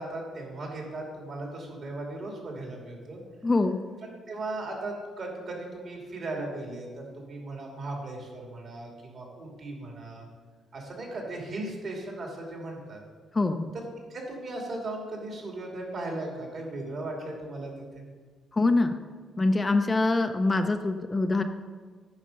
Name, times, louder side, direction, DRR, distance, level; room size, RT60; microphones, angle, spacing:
voice 1, 0.0-3.2 4.3-10.3 10.7-13.0 13.7-13.8 14.1-18.0, right 2 dB, 55° right, 0 dB, 2.5 m, -37 dB
voice 2, 3.4-3.8 13.3-13.7 18.5-18.9 19.4-21.4, left 2 dB, 25° left, 7 dB, 0.5 m, -24 dB
8.8 x 5.3 x 5.3 m, 1.5 s
cardioid pair, 90°, 0 cm